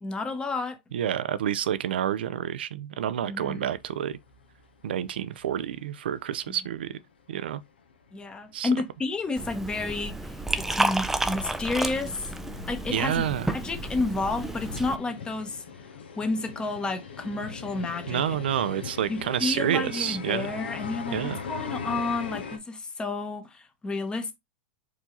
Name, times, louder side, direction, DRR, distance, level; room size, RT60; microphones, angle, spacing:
voice 1, 0.0-0.8 3.2-3.7 8.1-12.3 12.7-13.2 13.5-15.6 16.2-18.4 19.1-24.3, left 3 dB, 15° left, 1.0 m, -31 dB
voice 2, 0.9-4.2 4.8-7.0 7.3-7.6 8.5-8.7 12.9-13.5 18.1-20.5 21.1-21.4, right 10 dB, 75° right, 0.5 m, -29 dB
sound 1, 3.7-5.8 6.1-6.2 6.7-6.8 7.1-7.2 7.5-22.6, left 6 dB, 85° left, 1.1 m, -41 dB
Liquid, 9.4-15.0, right 2 dB, 5° right, 0.5 m, -31 dB
4.8 x 2.8 x 3.8 m
hypercardioid pair, 110°, 5 cm